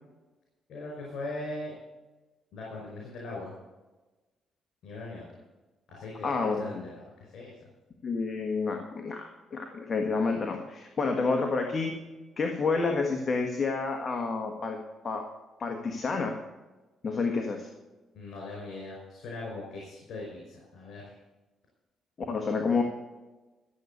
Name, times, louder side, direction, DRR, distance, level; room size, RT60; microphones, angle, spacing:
voice 1, 0.7-1.7 2.5-3.5 4.8-5.3 5.9-7.5 18.1-21.2, left 2 dB, 70° left, -2 dB, 5.2 m, -40 dB
voice 2, 6.2-6.8 8.0-11.9 12.4-14.8 15.0-15.3 15.6-16.4 17.0-17.7 22.3-22.8, left 4 dB, 40° left, 3 dB, 1.6 m, -29 dB
13.5 x 8.1 x 6.8 m, 1.2 s
cardioid pair, 90°, 0 cm